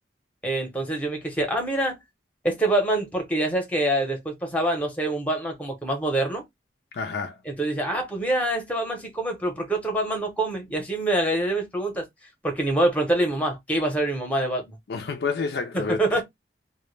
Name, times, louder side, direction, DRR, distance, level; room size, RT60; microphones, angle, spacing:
voice 1, 0.4-2.0 2.4-6.4 7.5-12.0 12.4-14.7 15.7-16.2, right 1 dB, 10° left, 0.7 m, -25 dB
voice 2, 6.9-7.4 14.9-16.2, left 4 dB, 60° left, 0.4 m, -29 dB
2.2 x 2.1 x 3.1 m
head